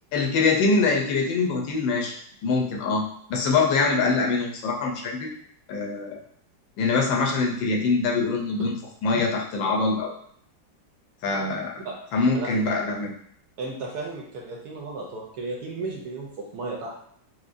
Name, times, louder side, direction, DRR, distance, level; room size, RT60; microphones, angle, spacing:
voice 1, 0.1-2.1 2.4-5.3 5.7-6.2 6.8-8.7 9.0-10.1 11.2-11.7 12.1-13.1, left 3 dB, 85° left, 0 dB, 1.4 m, -24 dB
voice 2, 12.3-12.6 13.6-17.0, right 3 dB, 70° right, -2 dB, 1.0 m, -34 dB
4.6 x 2.1 x 2.5 m, 0.64 s
omnidirectional pair, 2.0 m